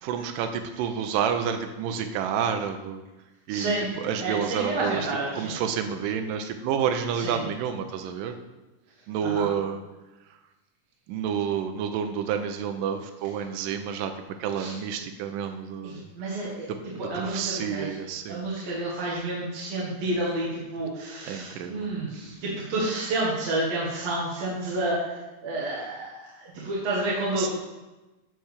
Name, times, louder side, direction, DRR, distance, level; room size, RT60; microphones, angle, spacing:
voice 1, 0.0-3.0 3.5-5.0 5.4-8.3 9.1-9.8 11.1-14.1 14.4-16.0 17.1-18.4 21.3-21.9 27.4-27.5, right 8 dB, 90° right, 6 dB, 2.3 m, -29 dB
voice 2, 3.5-3.9 4.2-5.6 7.1-7.5 9.2-9.5 14.6-14.8 15.8-16.7 17.0-17.9 18.3-25.2 25.4-27.5, right 2 dB, 55° right, -5 dB, 2.5 m, -30 dB
9.9 x 4.6 x 6.5 m, 1.1 s
omnidirectional pair, 3.8 m